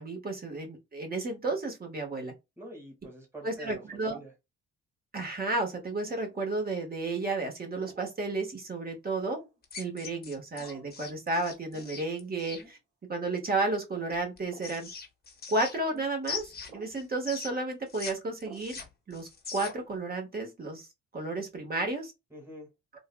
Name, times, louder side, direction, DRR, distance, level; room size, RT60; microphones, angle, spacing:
voice 1, 0.0-2.3 3.4-4.2 5.1-9.4 9.8-12.8 13.1-14.9 15.5-16.5 16.7-18.8 19.1-20.9 21.1-22.1, right 2 dB, 30° right, 1.5 m, -32 dB
voice 2, 2.6-4.3 22.3-22.7, right 1 dB, 10° right, 1.8 m, -46 dB
sound 1, 6.1-6.4 7.8-8.2 9.3-9.6 10.6-10.9 11.7-11.9 12.6-12.8 13.9-14.1 14.5-14.7 15.9-16.1 16.7-17.0 18.4-18.7, right 4 dB, 45° right, 1.9 m, -51 dB
sound 2, 9.6-12.6 14.1-16.0 16.2-18.1 18.4-19.9, left 5 dB, 30° left, 1.1 m, -41 dB
3.9 x 2.4 x 2.2 m
cardioid pair, 90°, 30 cm